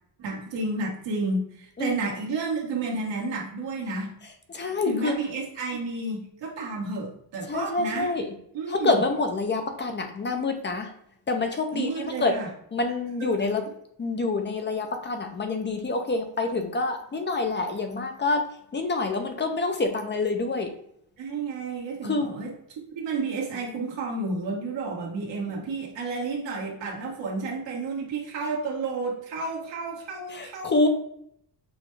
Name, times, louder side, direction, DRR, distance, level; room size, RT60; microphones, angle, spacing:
voice 1, 0.2-4.1 4.8-8.1 8.5-9.0 11.7-12.5 13.2-13.5 21.2-30.9, right 3 dB, 85° right, -2 dB, 1.5 m, -31 dB
voice 2, 4.2-5.2 5.6-5.7 7.5-8.4 8.7-10.9 11.3-12.4 12.7-13.7 14.0-18.5 18.7-20.7 22.0-22.3 30.3-30.9, left 3 dB, 25° left, 5 dB, 0.5 m, -27 dB
6.2 x 2.2 x 3.2 m, 0.71 s
cardioid pair, 120°, 43 cm